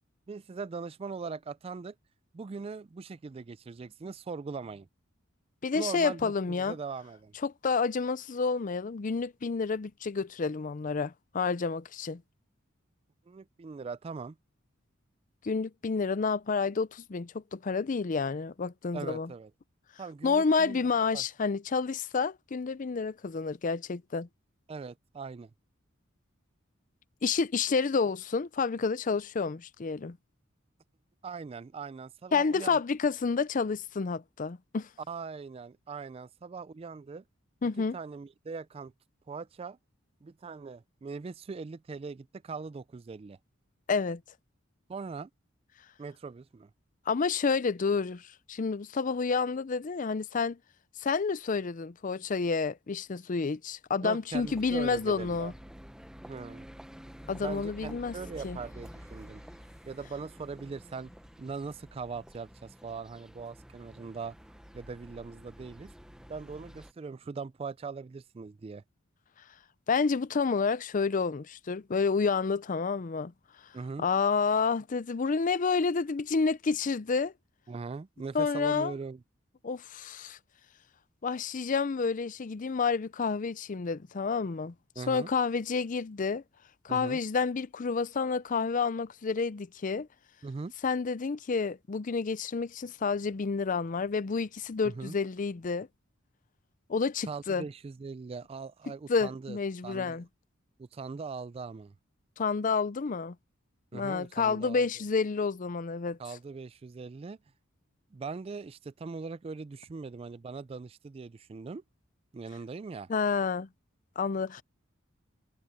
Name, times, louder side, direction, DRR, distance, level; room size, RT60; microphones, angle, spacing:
voice 1, 0.3-1.9 2.3-4.9 5.7-7.3 13.3-14.4 18.9-19.5 20.0-21.2 24.7-25.5 31.2-32.8 35.1-37.2 37.9-38.9 39.3-39.8 40.2-43.4 44.9-45.3 46.0-46.7 54.0-55.5 56.3-56.7 57.3-59.4 59.9-61.1 61.4-64.3 64.7-65.9 66.3-68.8 73.7-74.0 77.7-79.2 85.0-85.3 86.9-87.2 90.4-90.7 94.8-95.1 97.3-99.6 99.8-100.2 100.8-101.9 103.9-104.9 106.2-107.4 108.1-111.8 112.3-113.1, right 4 dB, 30° right, 0.3 m, -40 dB
voice 2, 5.6-6.8 7.4-12.2 15.4-19.3 20.2-24.3 27.2-30.2 32.3-34.9 37.6-38.0 43.9-44.2 47.1-50.6 51.0-55.5 57.3-58.1 58.4-58.6 69.9-73.3 74.0-77.3 78.3-78.9 79.6-80.4 81.2-86.4 86.8-90.1 90.8-95.9 96.9-97.6 99.1-100.3 102.4-103.4 103.9-106.2 113.1-113.7 114.2-114.6, left 5 dB, 40° left, 0.5 m, -29 dB
sound 1, 54.3-66.9, equal, 5° right, 0.9 m, -49 dB
sound 2, 58.3-63.2, left 1 dB, 15° left, 6.5 m, -67 dB
head